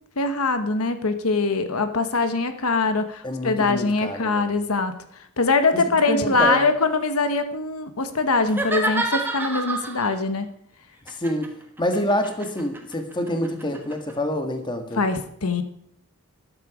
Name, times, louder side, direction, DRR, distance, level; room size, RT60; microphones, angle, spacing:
voice 1, 0.2-4.9 5.4-10.5 15.0-15.6, left 3 dB, 80° left, 9 dB, 1.2 m, -23 dB
voice 2, 3.2-4.5 5.7-6.6 11.1-15.1, left 1 dB, 20° left, 6 dB, 1.6 m, -27 dB
sound 1, 8.5-10.2 11.1-14.1, right 2 dB, 10° right, 1.4 m, -29 dB
13.5 x 11.0 x 4.9 m, 0.69 s
head